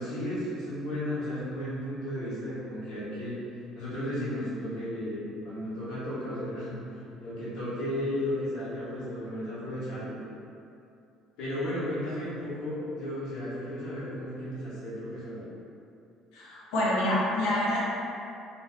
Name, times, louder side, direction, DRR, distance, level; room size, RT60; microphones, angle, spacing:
voice 1, 0.0-3.3 3.7-10.1 11.4-15.4, left 1 dB, 65° left, -11 dB, 1.0 m, -34 dB
voice 2, 16.3-17.8, left 1 dB, 85° left, -6 dB, 0.6 m, -27 dB
3.4 x 2.4 x 2.3 m, 2.6 s
cardioid pair, 175°, 0 cm